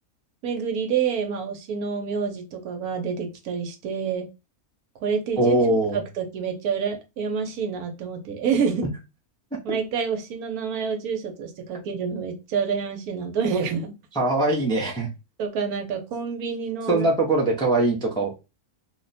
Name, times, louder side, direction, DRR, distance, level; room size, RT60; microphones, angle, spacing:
voice 1, 0.4-4.3 5.0-5.6 5.9-8.8 9.6-14.0 15.4-17.1, right 6 dB, 85° right, 4 dB, 1.2 m, -27 dB
voice 2, 5.4-6.0 9.7-9.8 14.1-15.1 16.9-18.3, right 2 dB, 5° left, -1 dB, 0.3 m, -21 dB
2.8 x 2.1 x 3.9 m, 0.27 s
omnidirectional pair, 1.5 m